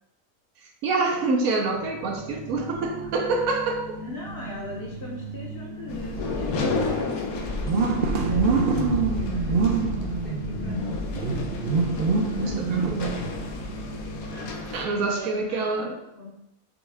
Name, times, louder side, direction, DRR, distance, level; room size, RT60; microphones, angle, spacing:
voice 1, 0.8-4.0 12.4-13.2 14.7-16.0, right 3 dB, 80° right, 2 dB, 1.1 m, -26 dB
sound 1, 1.8-15.1, right 4 dB, 60° right, 0.6 m, -29 dB
voice 2, 4.0-7.0 7.4-7.6 7.9-11.5 14.3-16.3, left 2 dB, 50° left, -2 dB, 0.8 m, -41 dB
sound 2, 5.9-14.8, left 3 dB, 85° left, 1.1 m, -31 dB
6.2 x 2.3 x 3.3 m, 0.87 s
omnidirectional pair, 1.5 m